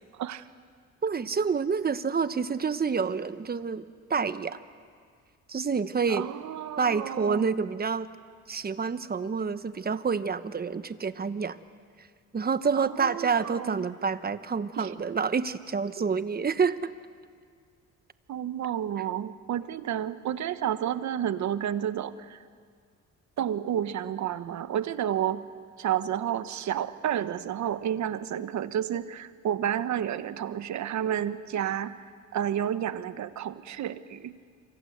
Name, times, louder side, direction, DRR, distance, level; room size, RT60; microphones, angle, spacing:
voice 1, 0.1-0.4 6.1-7.5 12.8-13.9 14.8-14.9 16.0-16.1 18.3-22.4 23.4-25.5 25.8-32.1 32.3-34.5, right 10 dB, 70° right, 12 dB, 1.2 m, -31 dB
voice 2, 1.0-3.8 4.1-4.6 5.5-6.2 6.8-8.1 8.5-11.6 12.3-16.9, right 5 dB, 30° right, 12 dB, 1.2 m, -28 dB
27.0 x 24.5 x 8.1 m, 2.1 s
cardioid pair, 90°, 30 cm